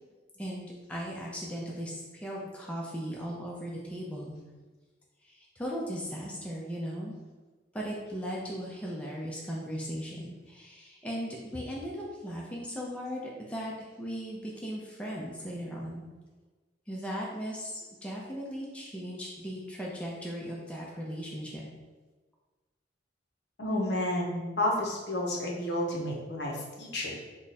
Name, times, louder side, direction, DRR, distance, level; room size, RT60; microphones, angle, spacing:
voice 1, 0.4-4.3 5.2-7.2 7.7-13.2 13.5-16.1 16.9-21.6, equal, 5° left, -4 dB, 0.4 m, -37 dB
voice 2, 23.6-27.2, left 1 dB, 60° left, -1 dB, 0.7 m, -31 dB
3.5 x 2.1 x 4.0 m, 1.3 s
head